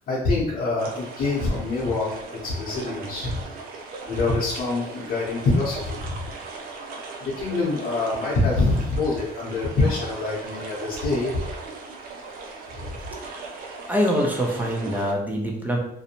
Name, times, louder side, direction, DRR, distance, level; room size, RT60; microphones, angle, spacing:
voice 1, 0.1-3.4 4.1-6.2 7.2-11.4, left 2 dB, 60° left, -7 dB, 0.8 m, -25 dB
sound 1, 0.8-15.1, right 4 dB, 60° right, 0.5 m, -38 dB
voice 2, 13.9-15.8, equal, 10° right, 0 dB, 0.5 m, -25 dB
2.6 x 2.1 x 2.8 m, 0.74 s
cardioid pair, 110°, 17 cm